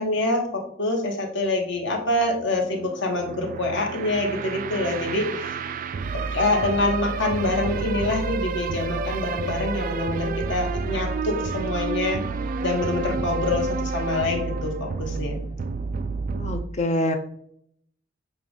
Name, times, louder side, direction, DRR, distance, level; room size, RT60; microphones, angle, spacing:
voice 1, 0.0-5.5 6.3-12.2 12.6-15.4, left 2 dB, 60° left, 1 dB, 1.5 m, -25 dB
sound 1, 1.5-16.6, right 4 dB, 40° right, 0.3 m, -30 dB
voice 2, 16.3-17.2, left 1 dB, 35° left, 5 dB, 0.6 m, -25 dB
7.3 x 2.5 x 5.2 m, 0.66 s
head